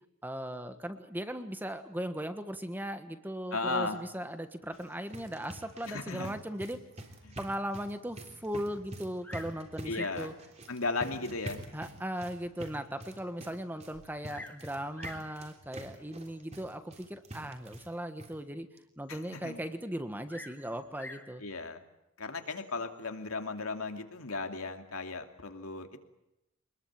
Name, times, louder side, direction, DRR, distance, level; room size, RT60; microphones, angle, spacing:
voice 1, 0.2-6.8 7.4-10.3 11.7-18.7 19.0-21.4, equal, 10° right, 9 dB, 1.4 m, -38 dB
voice 2, 3.5-4.0 5.9-6.4 7.2-7.4 9.9-10.3 10.7-11.6 19.1-19.6 21.4-21.8 22.2-26.0, left 3 dB, 85° left, 5 dB, 2.7 m, -36 dB
sound 1, 4.6-17.9 18.2-18.3 18.8-18.9 19.2-19.3, right 1 dB, 30° right, 3.3 m, -47 dB
Bird vocalization bird call bird song, 9.2-9.6 9.9-10.3 11.1-11.2 11.8-11.9 12.4-12.5 12.7-12.8 13.9-14.6 14.9-15.3 16.3-16.6 20.3-21.3 22.4-22.8, left 2 dB, 10° left, 2.5 m, -46 dB
25.0 x 21.0 x 9.0 m, 0.87 s
head